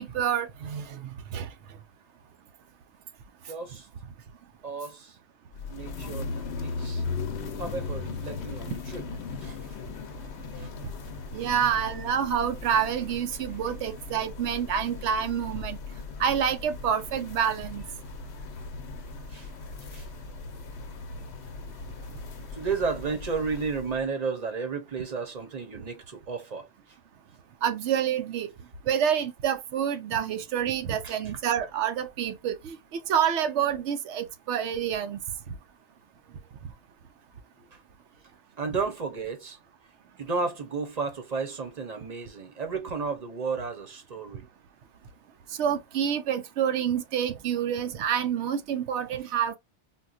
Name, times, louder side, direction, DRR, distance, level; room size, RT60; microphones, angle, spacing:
voice 1, 0.0-1.5 11.3-15.8 16.2-17.8 27.6-28.5 28.9-32.8 33.1-35.2 45.6-49.6, right 8 dB, 85° right, 0.9 m, -28 dB
voice 2, 3.4-3.9 4.6-5.2 5.7-7.0 7.6-9.0 9.4-9.6 10.5-10.7 11.4-11.5 19.3-19.5 19.9-20.1 22.5-26.7 31.0-31.2 38.6-39.6 40.2-44.5, right 4 dB, 40° right, 0.9 m, -33 dB
sound 1, 5.5-24.1, left 4 dB, 70° left, 0.9 m, -38 dB
4.1 x 2.2 x 2.4 m
omnidirectional pair, 1.1 m